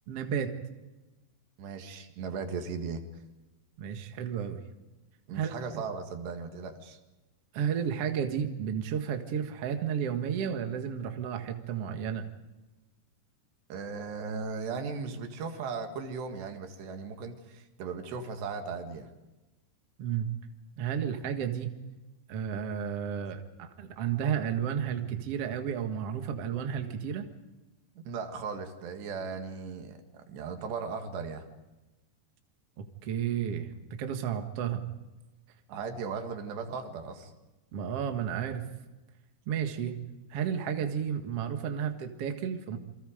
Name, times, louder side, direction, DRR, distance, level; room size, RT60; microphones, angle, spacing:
voice 1, 0.1-0.5 3.8-4.6 5.4-5.5 7.5-12.3 20.0-20.3 20.8-21.7 22.3-27.2 32.8-34.8 37.7-38.7 39.5-40.0 40.3-42.8, right 8 dB, 50° right, 5 dB, 2.0 m, -32 dB
voice 2, 1.6-3.0 5.3-7.0 13.7-19.1 28.1-31.5 35.7-37.3, right 5 dB, 80° right, 6 dB, 4.1 m, -37 dB
28.0 x 24.0 x 5.1 m, 1.1 s
omnidirectional pair, 4.8 m